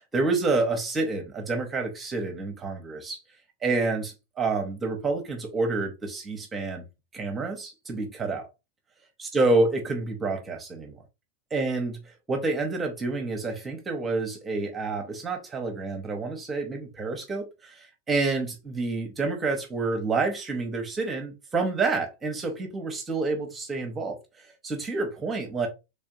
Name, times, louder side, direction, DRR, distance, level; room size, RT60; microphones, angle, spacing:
voice 1, 0.0-3.2 3.6-6.8 7.1-8.5 9.2-11.0 11.5-12.0 12.3-25.7, right 3 dB, 20° right, 0.8 m, -28 dB
3.4 x 3.3 x 2.7 m
figure-of-eight pair, 90°, 0 cm